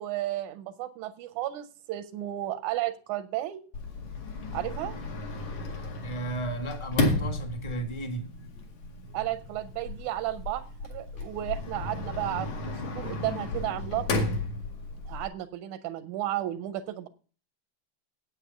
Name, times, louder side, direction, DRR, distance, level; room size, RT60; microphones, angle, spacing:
voice 1, 0.0-3.6 4.5-5.0 9.1-14.2 15.1-17.1, right 14 dB, 85° right, 2.1 m, -33 dB
Sliding door, 3.7-15.3, left 2 dB, 70° left, 3.4 m, -33 dB
voice 2, 6.0-8.3, right 1 dB, 20° left, 0.9 m, -34 dB
8.9 x 8.3 x 6.9 m
omnidirectional pair, 3.3 m